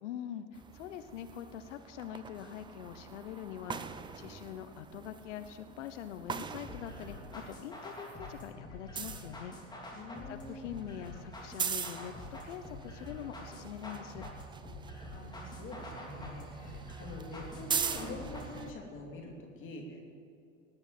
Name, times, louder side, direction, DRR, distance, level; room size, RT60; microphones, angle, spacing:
voice 1, 0.0-9.5 10.3-14.3, left 10 dB, 70° left, 10 dB, 1.0 m, -44 dB
sound 1, 0.5-7.6 7.9-18.7, right 6 dB, 10° right, 0.6 m, -42 dB
sound 2, 6.6-18.6, left 2 dB, 10° left, 3.1 m, -47 dB
voice 2, 9.9-10.8 15.1-20.0, left 2 dB, 30° left, 1 dB, 2.9 m, -45 dB
19.0 x 9.0 x 7.7 m, 2.5 s
hypercardioid pair, 110°, 38 cm